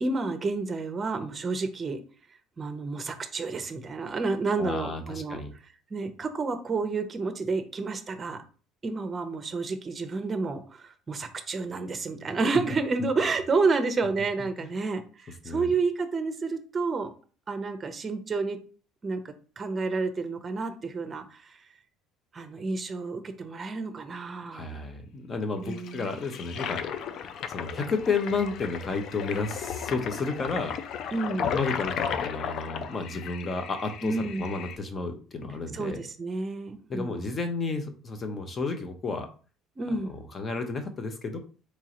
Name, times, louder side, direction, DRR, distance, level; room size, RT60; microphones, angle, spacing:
voice 1, 0.0-2.0 2.6-5.4 5.9-8.4 8.8-17.1 17.5-18.6 19.0-21.5 22.3-24.7 25.6-26.1 31.1-31.6 34.0-34.4 35.7-37.4 39.8-40.1, right 3 dB, 30° right, 8 dB, 0.6 m, -30 dB
voice 2, 4.6-5.5 14.6-14.7 15.4-15.7 24.5-26.8 27.5-30.7 31.5-36.0 36.9-39.3 40.0-41.4, left 4 dB, 30° left, 6 dB, 0.7 m, -32 dB
Toilet flush, 25.7-34.8, left 7 dB, 55° left, 0.4 m, -35 dB
3.7 x 3.0 x 2.9 m, 0.38 s
supercardioid pair, 95°, 0 cm